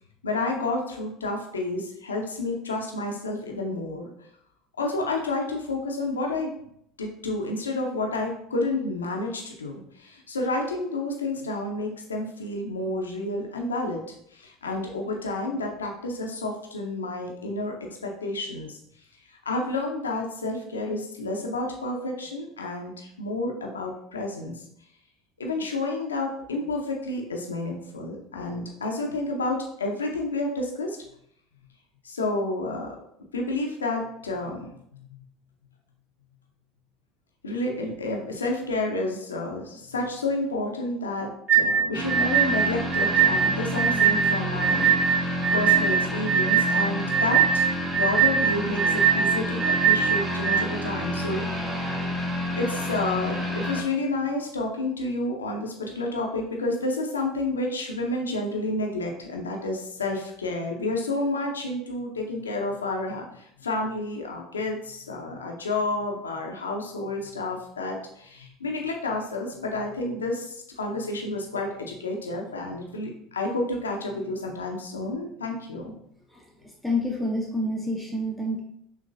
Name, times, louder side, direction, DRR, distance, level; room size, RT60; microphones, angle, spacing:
voice 1, 0.2-4.1 4.8-6.5 7.0-14.0 14.3-17.7 18.0-18.8 19.3-24.6 25.4-31.0 32.0-33.0 33.3-35.2 37.4-51.9 52.6-75.9, left 2 dB, 90° left, 1 dB, 0.7 m, -30 dB
sound 1, 41.5-50.6, right 7 dB, 40° right, 1.8 m, -21 dB
sound 2, 41.9-53.8, equal, 25° right, 1.2 m, -30 dB
voice 2, 76.3-78.6, left 1 dB, ahead, -2 dB, 0.8 m, -29 dB
6.4 x 3.0 x 2.6 m, 0.73 s
hypercardioid pair, 70°, 0 cm